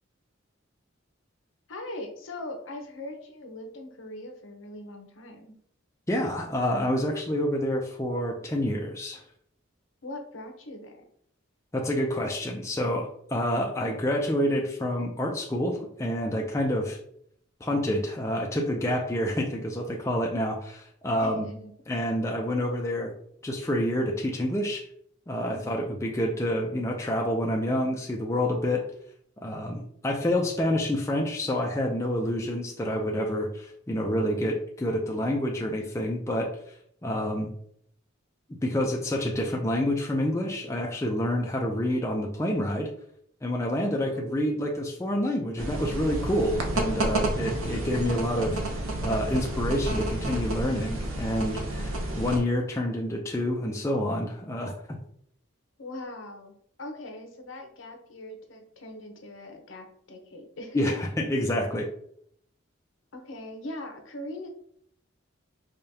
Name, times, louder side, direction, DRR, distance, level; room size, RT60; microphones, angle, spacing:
voice 1, 1.7-5.5 10.0-11.0 21.1-21.7 25.5-25.8 43.9-44.3 47.4-47.7 55.8-60.9 63.1-64.5, left 1 dB, 70° left, 4 dB, 0.8 m, -41 dB
voice 2, 6.1-9.2 11.7-17.0 17.6-21.5 21.9-23.1 23.4-24.8 25.3-28.9 29.4-36.5 37.0-37.5 38.6-42.9 43.4-55.0 60.7-61.9, left 1 dB, 15° left, -1 dB, 0.4 m, -28 dB
sound 1, 45.6-52.4, right 1 dB, 85° right, 0.7 m, -30 dB
4.9 x 2.3 x 2.7 m, 0.66 s
head